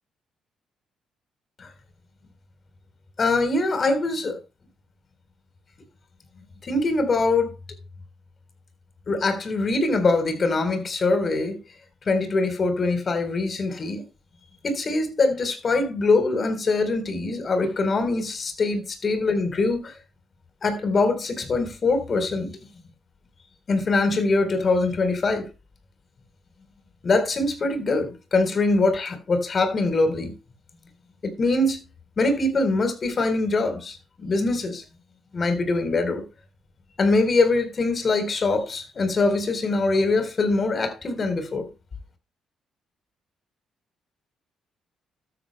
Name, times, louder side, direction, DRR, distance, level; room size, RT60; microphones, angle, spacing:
voice 1, 3.2-4.4 6.6-7.5 9.1-11.6 12.1-14.0 14.6-19.9 20.6-22.5 23.7-25.5 27.0-30.3 31.2-31.8 32.2-34.8 35.3-36.2 37.0-41.7, left 3 dB, 45° left, 3.9 m, -23 dB
14.0 x 12.5 x 2.2 m
hypercardioid pair, 45°, 0 cm